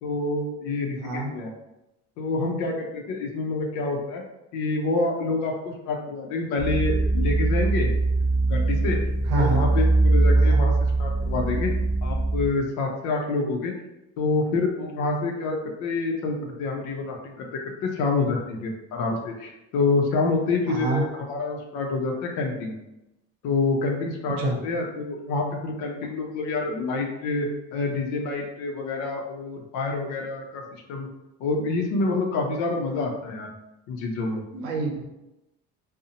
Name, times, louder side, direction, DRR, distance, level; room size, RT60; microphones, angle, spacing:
voice 1, 0.0-1.5 2.2-4.2 4.5-7.9 8.2-9.0 9.4-11.7 12.0-13.7 14.2-22.8 23.4-31.1 31.4-33.5 33.9-34.4, left 3 dB, 70° left, 1 dB, 0.6 m, -27 dB
sound 1, 6.6-12.5, right 2 dB, ahead, 0.3 m, -22 dB
voice 2, 9.3-9.7 10.4-10.6 20.7-21.0 24.4-24.6 34.5-35.0, right 2 dB, 90° right, 2 dB, 0.7 m, -26 dB
2.6 x 2.0 x 2.7 m, 0.93 s
cardioid pair, 125°, 31 cm